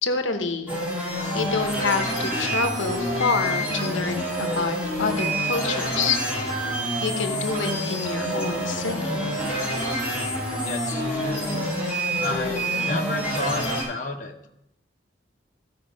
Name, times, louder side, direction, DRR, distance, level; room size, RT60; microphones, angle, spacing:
voice 1, 0.0-0.7 1.3-6.6 7.0-9.3, left 4 dB, 85° left, 6 dB, 1.0 m, -27 dB
sound 1, 0.7-13.8, equal, 10° right, 4.1 m, -27 dB
voice 2, 10.6-11.5 12.2-14.5, left 2 dB, 40° left, 1 dB, 1.0 m, -32 dB
14.5 x 5.5 x 5.1 m, 0.84 s
head